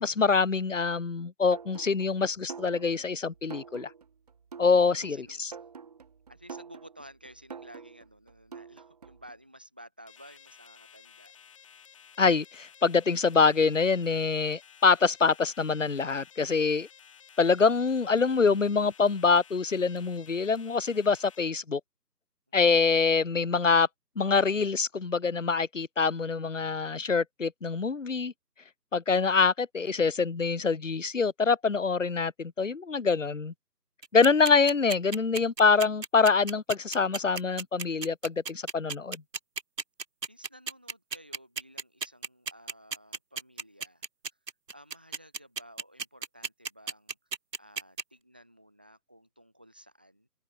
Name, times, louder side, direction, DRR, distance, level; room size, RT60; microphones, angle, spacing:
voice 1, 0.0-3.9 4.6-5.5 12.2-16.9 17.4-21.8 22.5-23.9 24.2-28.3 28.9-33.5 34.1-39.2, left 4 dB, 50° left, 0.8 m, -25 dB
sound 1, 1.5-9.3, right 6 dB, 25° right, 2.6 m, -47 dB
voice 2, 5.0-5.6 6.3-11.3 22.5-22.6 40.3-44.0 44.7-47.2 47.6-50.3, equal, 5° right, 1.1 m, -53 dB
sound 2, 10.1-21.4, left 8 dB, 20° left, 3.4 m, -54 dB
sound 3, 34.0-48.0, right 5 dB, 85° right, 1.0 m, -34 dB
figure-of-eight pair, 155°, 48 cm